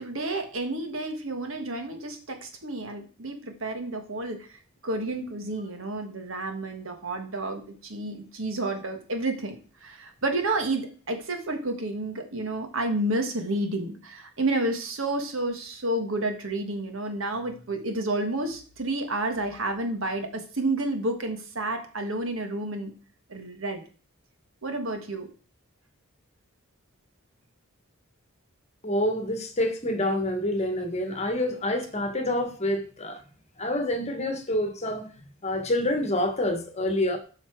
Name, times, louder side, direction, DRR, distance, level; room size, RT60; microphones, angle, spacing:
voice 1, 0.0-22.9 23.3-23.8 24.6-25.3, right 2 dB, 70° right, 1.5 m, -30 dB
voice 2, 28.8-33.2 33.6-35.1 35.4-37.2, left 1 dB, 30° left, 1.3 m, -27 dB
9.5 x 5.7 x 4.6 m
head